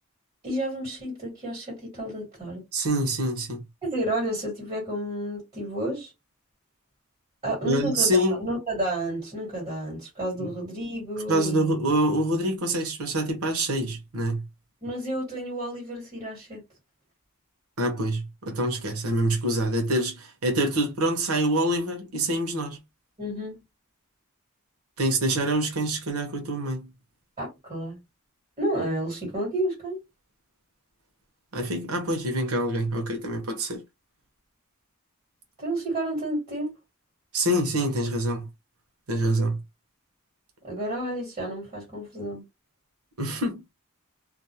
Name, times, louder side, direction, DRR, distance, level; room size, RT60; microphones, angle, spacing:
voice 1, 0.4-2.6 3.8-6.1 7.4-11.7 14.8-16.6 23.2-23.6 27.4-28.0 28.6-30.0 35.6-36.7 40.6-42.4, right 1 dB, 30° right, 1.5 m, -31 dB
voice 2, 2.7-3.6 7.6-8.4 10.4-10.5 11.3-14.4 17.8-22.8 25.0-26.9 31.5-33.8 37.3-38.5 39.1-39.6 43.2-43.6, right 1 dB, 85° right, 0.8 m, -26 dB
2.5 x 2.0 x 2.8 m
head